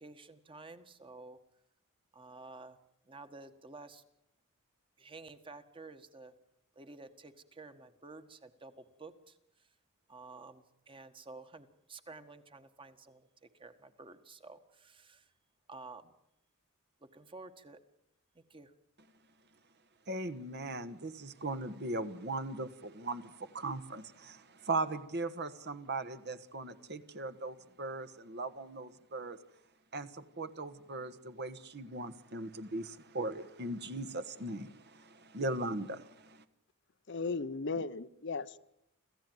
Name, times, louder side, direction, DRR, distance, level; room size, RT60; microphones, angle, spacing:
voice 1, 0.0-1.4 2.1-2.8 3.0-4.0 5.0-6.3 6.7-9.7 10.1-15.3 15.7-16.1 17.0-17.8 18.3-18.7, right 3 dB, 25° right, 1.6 m, -51 dB
voice 2, 20.1-29.4 29.9-36.4, right 2 dB, 50° right, 1.4 m, -39 dB
voice 3, 37.1-38.6, left 4 dB, 55° left, 0.8 m, -36 dB
27.0 x 15.5 x 9.2 m
head